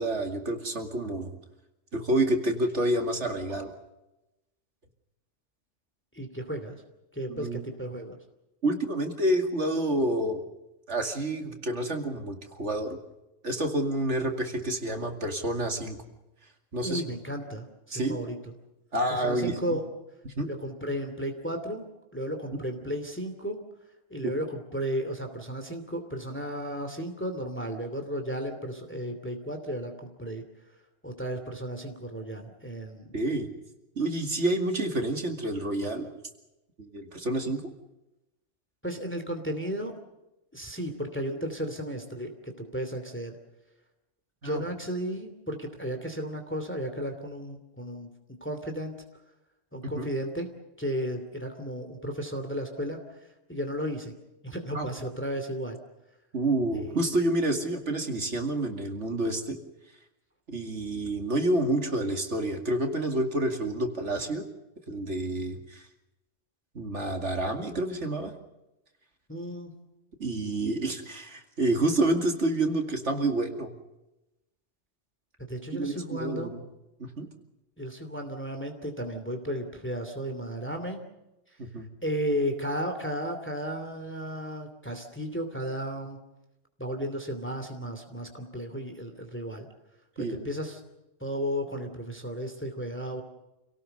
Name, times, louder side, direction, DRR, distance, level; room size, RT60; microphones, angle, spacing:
voice 1, 0.0-1.4 1.9-3.7 7.3-7.6 8.6-10.4 10.9-13.0 13.4-16.0 16.7-17.0 17.9-18.2 18.9-19.8 20.2-20.5 24.2-24.3 33.1-33.5 34.0-36.1 36.8-37.6 44.4-44.6 49.9-50.1 54.7-54.9 56.3-59.6 60.5-64.4 64.9-65.9 66.7-68.3 70.2-73.7 75.7-76.6 77.0-77.3 81.6-81.9 90.2-90.5, right 1 dB, 65° right, 4 dB, 2.7 m, -28 dB
voice 2, 6.1-6.8 7.1-8.2 16.8-18.5 19.1-19.9 20.4-21.8 22.1-23.6 24.1-30.4 31.0-33.2 38.8-39.9 40.5-43.4 44.4-48.1 48.4-48.9 49.7-50.5 50.8-53.2 53.5-54.1 54.4-55.8 56.8-57.0 69.3-69.7 70.2-70.3 75.5-76.5 77.8-81.0 82.0-86.2 86.8-89.7 90.2-90.8 91.2-93.2, equal, 10° left, 5 dB, 2.7 m, -34 dB
28.0 x 18.0 x 6.7 m, 0.96 s
omnidirectional pair, 1.3 m